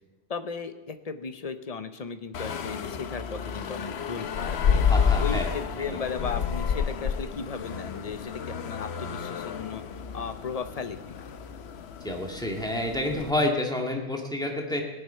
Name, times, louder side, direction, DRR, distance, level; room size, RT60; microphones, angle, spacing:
voice 1, 0.3-4.8 5.2-11.3, left 5 dB, 40° left, 10 dB, 0.8 m, -36 dB
sound 1, 2.3-13.3, left 7 dB, 75° left, 1.0 m, -30 dB
voice 2, 4.9-5.5 12.0-14.8, left 1 dB, 5° left, 1 dB, 1.8 m, -28 dB
17.0 x 11.0 x 5.6 m, 1.1 s
omnidirectional pair, 1.1 m